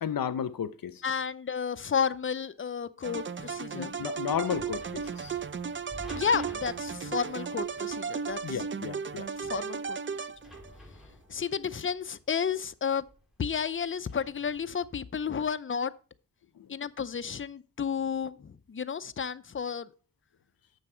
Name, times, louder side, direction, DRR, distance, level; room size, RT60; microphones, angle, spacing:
voice 1, 0.0-1.0 3.7-5.4 8.4-9.3 16.5-16.8, left 8 dB, 80° left, 0.7 m, -33 dB
voice 2, 1.0-4.0 6.1-8.6 9.4-10.3 11.3-13.0 13.4-15.9 16.7-19.9, left 6 dB, 35° left, 0.5 m, -32 dB
sound 1, 3.0-10.8, right 6 dB, 35° right, 0.5 m, -35 dB
sound 2, 3.3-15.0, left 1 dB, ahead, 3.0 m, -52 dB
9.6 x 7.0 x 4.4 m
wide cardioid pair, 70°, 34 cm